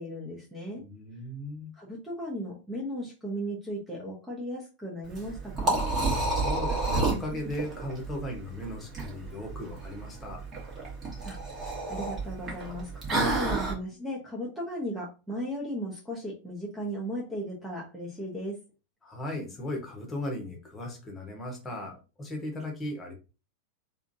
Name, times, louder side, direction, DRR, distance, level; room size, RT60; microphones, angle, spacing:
voice 1, 0.0-0.8 1.7-5.8 11.2-11.4 11.9-18.6, equal, 5° right, -4 dB, 0.9 m, -36 dB
voice 2, 0.8-1.7 6.1-10.4 19.0-23.1, left 1 dB, 15° left, 1 dB, 1.2 m, -37 dB
Liquid, 5.0-13.7, right 2 dB, 25° right, 1.5 m, -30 dB
3.7 x 2.5 x 2.7 m, 0.31 s
figure-of-eight pair, 90°, 0 cm